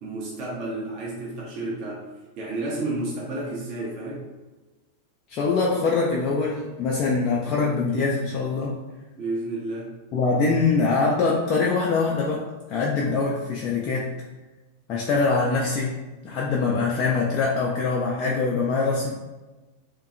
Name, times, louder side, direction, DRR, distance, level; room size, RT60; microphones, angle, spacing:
voice 1, 0.0-2.1 2.4-4.3 9.1-9.9, right 2 dB, 40° right, -4 dB, 0.6 m, -31 dB
voice 2, 5.3-8.8 10.1-14.1 14.9-16.0 16.2-19.1, left 4 dB, 35° left, -3 dB, 0.4 m, -23 dB
2.6 x 2.1 x 2.5 m, 1.2 s
figure-of-eight pair, 90°, 0 cm